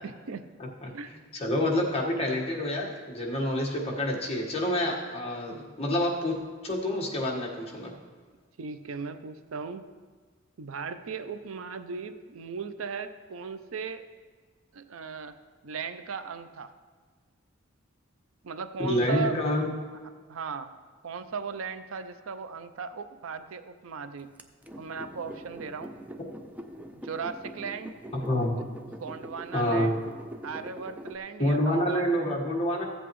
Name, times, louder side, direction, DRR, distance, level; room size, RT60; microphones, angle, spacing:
voice 1, 0.0-0.5 0.9-1.1 8.6-9.9 10.6-14.0 14.7-15.3 15.6-16.7 18.4-19.4 20.3-20.7 21.0-24.3 24.8-25.9 26.9-27.9 28.9-30.0 30.4-32.3, right 5 dB, 80° right, 10 dB, 0.5 m, -37 dB
voice 2, 0.6-0.9 1.3-6.4 6.6-7.9 18.8-19.7 28.1-28.6 29.5-29.9 31.4-32.8, left 1 dB, 30° left, -3 dB, 1.5 m, -27 dB
sound 1, 24.4-31.2, equal, 10° right, 0.4 m, -43 dB
14.5 x 8.0 x 3.1 m, 1.5 s
head